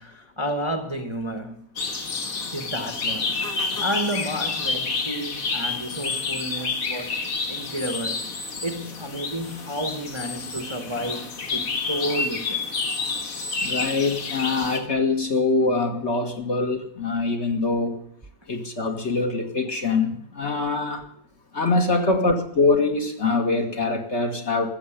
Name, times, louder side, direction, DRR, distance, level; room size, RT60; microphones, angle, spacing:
voice 1, 0.0-1.6 2.5-3.3 3.8-12.6, right 1 dB, 20° right, 1.1 m, -31 dB
sound 1, 1.8-14.8, left 4 dB, 70° left, 2.0 m, -29 dB
voice 2, 13.6-18.0 18.5-21.1 21.5-24.7, left 3 dB, 50° left, 2.0 m, -23 dB
14.5 x 7.9 x 10.0 m
omnidirectional pair, 1.6 m